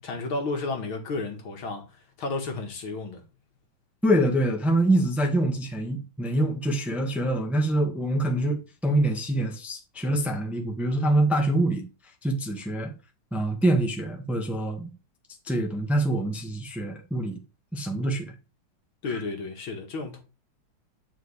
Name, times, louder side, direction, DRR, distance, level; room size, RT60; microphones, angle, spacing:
voice 1, 0.0-3.2 19.0-20.2, left 3 dB, 75° left, 2.5 m, -32 dB
voice 2, 4.0-11.8 12.2-12.9 13.3-14.9 15.5-17.4 17.7-18.3, right 1 dB, ahead, 1.2 m, -25 dB
9.3 x 5.1 x 3.3 m
omnidirectional pair, 2.3 m